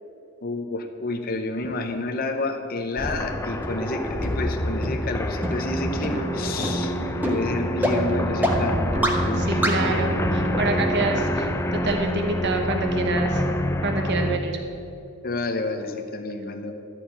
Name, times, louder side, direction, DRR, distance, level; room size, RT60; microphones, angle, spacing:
voice 1, 0.4-7.0 7.2-9.0 9.2-9.6 15.2-16.7, left 2 dB, 40° left, 4 dB, 0.7 m, -30 dB
sound 1, 3.0-14.4, left 1 dB, 10° left, 0.4 m, -27 dB
sound 2, 3.0-3.1 3.6-3.7 4.2-4.3 4.8-4.9 5.4-5.5 6.0-6.1 6.6-6.7 7.2-7.3 7.8-7.9 8.4-8.5 9.0-9.1 9.6-9.7, equal, 10° right, 1.0 m, -24 dB
sound 3, 5.4-11.4, right 2 dB, 30° right, 0.7 m, -31 dB
voice 2, 9.3-13.4 13.8-14.6, right 2 dB, 50° right, 4 dB, 1.0 m, -27 dB
13.0 x 4.5 x 8.6 m, 2.8 s
head